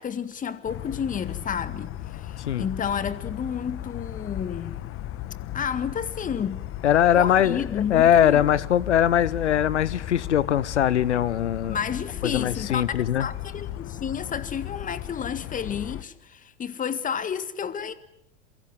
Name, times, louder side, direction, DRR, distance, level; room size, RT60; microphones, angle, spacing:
voice 1, 0.0-4.8 5.5-6.6 7.1-8.5 11.1-11.2 11.7-17.9, left 7 dB, 25° left, 1.9 m, -31 dB
sound 1, 0.7-16.0, left 13 dB, 40° left, 1.5 m, -36 dB
voice 2, 6.8-7.6 7.9-11.8 12.2-13.3, left 10 dB, 75° left, 1.1 m, -21 dB
27.5 x 23.5 x 8.0 m
figure-of-eight pair, 90°, 35 cm